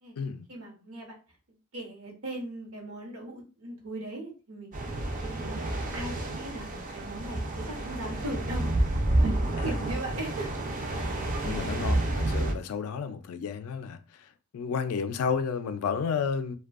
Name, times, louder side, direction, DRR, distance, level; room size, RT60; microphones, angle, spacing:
voice 1, 0.5-1.1 1.7-4.7 5.2-5.6 5.9-8.6 9.2-10.5 10.9-11.4 12.5-12.8, right 1 dB, 75° right, 0.9 m, -39 dB
sound 1, 4.7-12.5, right 1 dB, 35° right, 0.4 m, -29 dB
voice 2, 11.4-14.0 14.5-16.6, left 6 dB, 75° left, 0.3 m, -31 dB
2.5 x 2.2 x 2.4 m
head